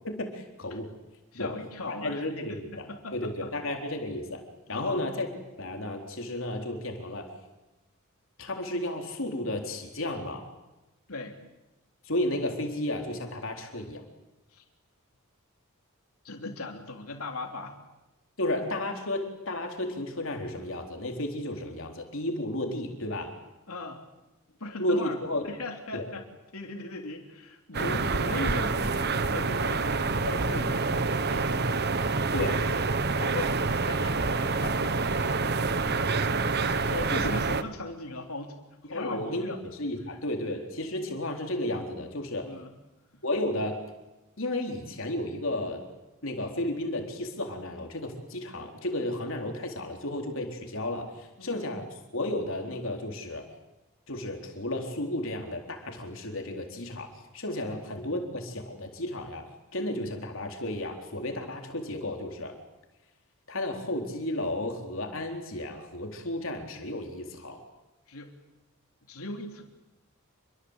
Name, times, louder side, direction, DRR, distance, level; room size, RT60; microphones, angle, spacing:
voice 1, 0.0-0.9 1.3-1.5 1.9-2.9 3.1-4.4 4.7-5.3 5.6-7.3 8.4-10.5 12.0-14.0 18.4-23.4 24.8-25.4 25.9-26.1 28.0-28.2 32.3-32.6 38.9-39.5 39.8-42.5 43.2-43.8 44.4-45.8 46.2-51.9 52.1-53.5 54.1-59.4 59.7-62.6 63.5-67.6, left 1 dB, 65° left, 3 dB, 4.0 m, -33 dB
voice 2, 1.3-3.7 4.7-5.0 11.1-11.4 14.5-14.6 16.2-17.8 23.7-24.0 24.6-25.2 25.4-26.2 26.5-31.7 33.2-33.6 33.9-34.3 34.6-35.4 36.5-38.5 38.8-39.6 42.4-42.7 43.1-43.2 51.4-51.6 57.6-57.8 68.1-68.3 69.1-69.6, left 2 dB, 85° left, 2 dB, 3.6 m, -38 dB
sound 1, 27.7-37.6, right 4 dB, 50° right, 1.3 m, -27 dB
28.0 x 24.0 x 8.2 m, 0.99 s
head